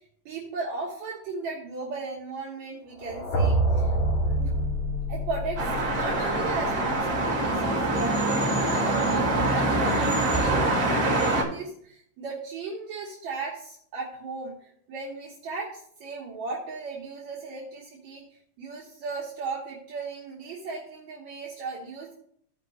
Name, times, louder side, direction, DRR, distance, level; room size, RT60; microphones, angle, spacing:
voice 1, 0.3-3.9 4.3-4.5 5.1-18.2 18.6-22.1, right 3 dB, 70° right, -5 dB, 2.6 m, -36 dB
sound 1, 3.0-7.0, right 1 dB, 75° left, 3.3 m, -27 dB
sound 2, 5.6-11.4, right 2 dB, 35° right, 1.9 m, -24 dB
15.0 x 5.2 x 3.0 m, 0.63 s
omnidirectional pair, 3.4 m